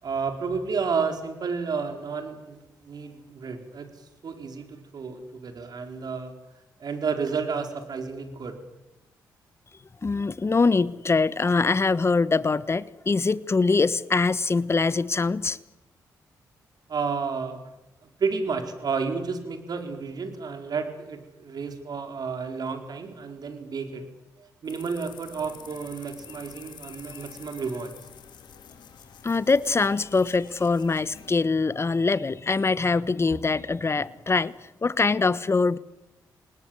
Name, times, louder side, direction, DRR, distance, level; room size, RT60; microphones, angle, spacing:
voice 1, 0.0-6.3 6.8-8.6 16.9-17.6 18.2-24.1 24.4-27.9, right 5 dB, 60° right, 4.5 m, -31 dB
voice 2, 10.0-15.6 29.2-34.5 34.8-35.8, left 4 dB, 35° left, 1.3 m, -23 dB
sound 1, 24.6-31.3, left 8 dB, 75° left, 3.2 m, -48 dB
27.0 x 19.5 x 7.9 m
supercardioid pair, 50°, 8 cm